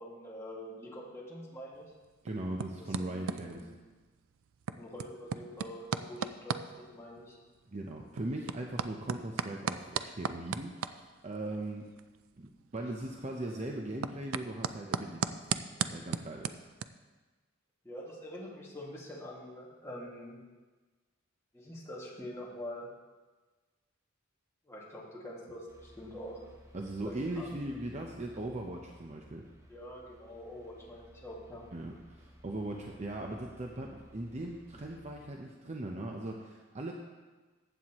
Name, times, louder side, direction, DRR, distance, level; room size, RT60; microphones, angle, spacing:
voice 1, 0.0-1.9 2.7-3.6 4.8-7.4 17.8-20.4 21.5-22.9 24.7-26.4 27.0-27.5 29.7-31.6, equal, 15° left, -5 dB, 2.0 m, -45 dB
sound 1, 1.7-16.8, right 6 dB, 75° right, 0.4 m, -39 dB
voice 2, 2.2-3.7 7.7-11.9 12.4-15.5 15.8-16.6 26.7-29.4 31.7-36.9, right 1 dB, 35° right, 1 dB, 0.7 m, -39 dB
sound 2, 25.7-35.3, equal, 15° right, 1.0 m, -57 dB
15.0 x 8.2 x 3.0 m, 1.3 s
head